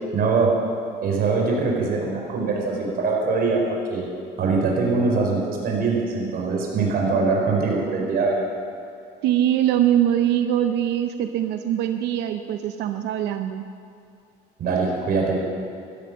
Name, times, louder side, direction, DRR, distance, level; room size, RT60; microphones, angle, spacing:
voice 1, 0.1-0.6 1.0-4.0 4.4-8.3 14.6-15.6, right 4 dB, 60° right, -1 dB, 4.4 m, -22 dB
voice 2, 9.2-13.6, right 11 dB, 85° right, 7 dB, 0.7 m, -22 dB
15.0 x 13.5 x 6.3 m, 2.6 s
cardioid pair, 110°, 17 cm